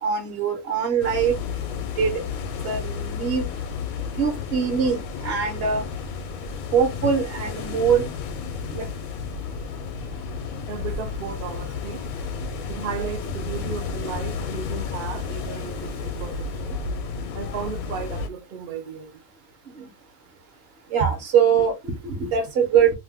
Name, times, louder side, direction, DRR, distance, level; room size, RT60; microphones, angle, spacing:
voice 1, 0.0-1.4 2.0-2.1 2.6-3.4 4.2-5.0 5.2-5.8 6.7-8.0 8.7-8.8 20.9-22.9, right 7 dB, 50° right, 0.9 m, -22 dB
sound 1, 1.0-18.3, left 5 dB, 75° left, 1.0 m, -32 dB
voice 2, 10.7-12.0 12.7-16.8 17.3-19.1 21.0-21.1, right 7 dB, 75° right, 0.5 m, -34 dB
2.6 x 2.1 x 3.3 m
omnidirectional pair, 1.5 m